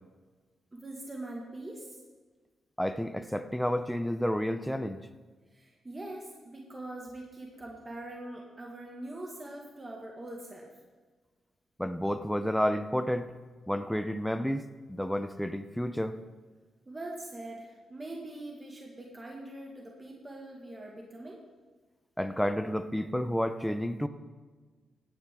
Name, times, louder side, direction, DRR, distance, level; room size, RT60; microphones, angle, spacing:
voice 1, 0.7-2.0 5.5-10.7 16.9-21.4, right 1 dB, 25° right, -1 dB, 2.0 m, -43 dB
voice 2, 2.8-5.1 11.8-13.3 13.7-14.6 14.9-16.2 22.2-24.1, equal, 5° left, 9 dB, 0.6 m, -30 dB
16.0 x 9.0 x 3.8 m, 1.4 s
cardioid pair, 70°, 0 cm